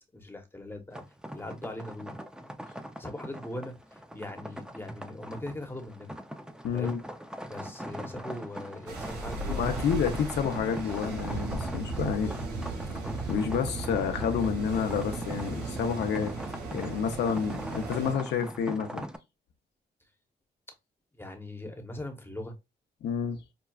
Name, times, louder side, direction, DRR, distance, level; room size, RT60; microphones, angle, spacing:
voice 1, 0.1-1.0 1.3-2.1 3.0-6.2 6.7-7.0 7.5-9.7 21.2-22.6, left 1 dB, 15° left, 0.9 m, -40 dB
sound 1, 0.9-19.2, equal, 5° right, 0.5 m, -42 dB
voice 2, 6.6-7.0 9.5-12.4 13.3-16.3 16.7-19.0 23.0-23.4, left 7 dB, 80° left, 0.7 m, -29 dB
sound 2, 8.9-18.1, right 3 dB, 70° right, 1.8 m, -36 dB
5.8 x 2.3 x 2.3 m
cardioid pair, 95°, 17 cm